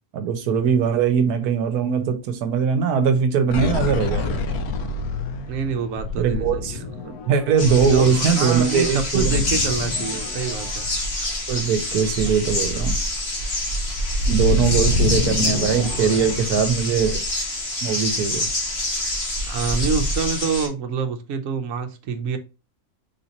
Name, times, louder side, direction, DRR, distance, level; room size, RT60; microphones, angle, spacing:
voice 1, 0.1-4.4 6.2-6.8 7.3-9.4 11.5-13.0 14.3-17.2 17.8-18.5, right 6 dB, 80° right, 1.2 m, -21 dB
sound 1, 3.5-11.9 12.3-12.5 12.7-16.9, left 3 dB, 75° left, 1.1 m, -27 dB
voice 2, 5.4-7.2 7.6-10.9 14.2-14.8 19.4-22.4, right 6 dB, 65° right, 1.0 m, -27 dB
sound 2, 7.6-20.7, left 1 dB, 45° left, 1.3 m, -26 dB
4.1 x 3.6 x 2.8 m
omnidirectional pair, 1.6 m